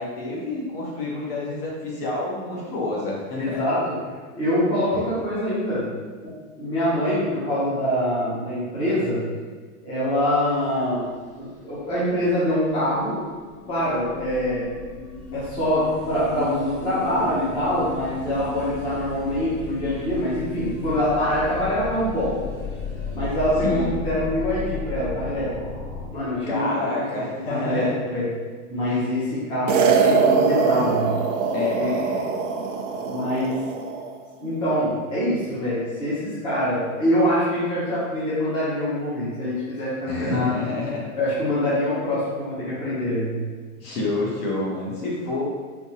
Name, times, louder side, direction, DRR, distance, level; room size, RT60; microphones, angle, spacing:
voice 1, 0.0-3.6 23.6-24.0 26.5-28.0 28.9-29.1 31.5-32.3 40.1-41.0 43.8-45.4, left 2 dB, 40° left, -4 dB, 0.9 m, -28 dB
voice 2, 3.3-3.8 4.4-5.8 6.2-9.2 9.8-11.0 11.4-13.2 13.7-14.7 15.3-22.3 23.1-25.5 26.1-26.7 27.0-27.2 27.5-28.2 28.7-31.1 31.7-32.0 33.0-33.6 34.4-40.5 41.2-43.3, equal, 10° left, -11 dB, 0.7 m, -24 dB
sound 1, 10.2-26.1, left 4 dB, 75° left, 1.1 m, -35 dB
sound 2, 29.7-34.1, right 5 dB, 55° right, 0.5 m, -22 dB
3.5 x 2.8 x 2.8 m, 1.5 s
supercardioid pair, 160°, 43 cm